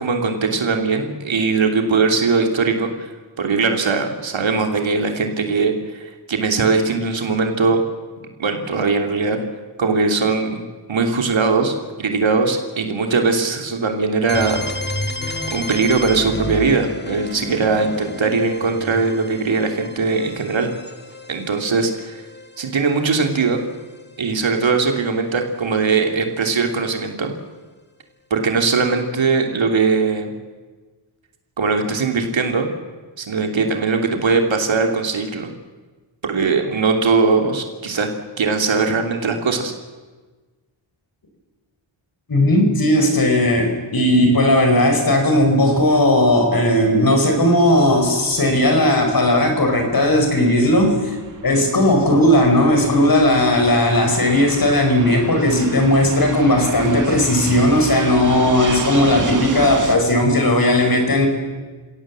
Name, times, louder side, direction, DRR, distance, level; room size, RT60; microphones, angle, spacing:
voice 1, 0.0-3.1 3.4-7.8 8.4-9.4 9.8-14.6 15.2-20.7 21.3-22.2 22.6-23.6 24.2-27.3 28.3-30.3 31.6-32.7 33.2-35.5 36.2-38.1 38.4-39.7, right 4 dB, 70° right, 4 dB, 2.9 m, -20 dB
sound 1, 14.3-24.0, left 1 dB, 20° left, 1.9 m, -32 dB
voice 2, 42.3-51.1 51.4-61.3, left 1 dB, 45° left, 4 dB, 5.0 m, -16 dB
Fixed-wing aircraft airplane, 47.7-60.0, right 4 dB, 40° right, 1.8 m, -32 dB
29.0 x 17.5 x 7.6 m, 1.3 s
wide cardioid pair, 120°, 47 cm